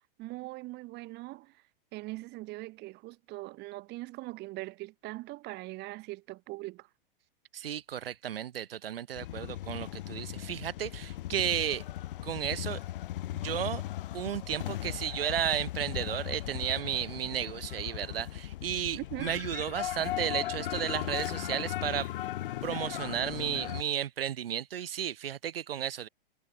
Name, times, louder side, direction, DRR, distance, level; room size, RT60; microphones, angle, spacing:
voice 1, 0.2-1.6 1.9-6.9 19.0-19.3, right 20 dB, 35° right, 1.8 m, -41 dB
voice 2, 7.5-11.8 12.2-12.8 13.3-13.8 14.1-22.1 22.6-26.1, right 10 dB, 75° right, 3.3 m, -33 dB
sound 1, 9.1-23.8, left 14 dB, 65° left, 1.8 m, -37 dB
hypercardioid pair, 120°, 29 cm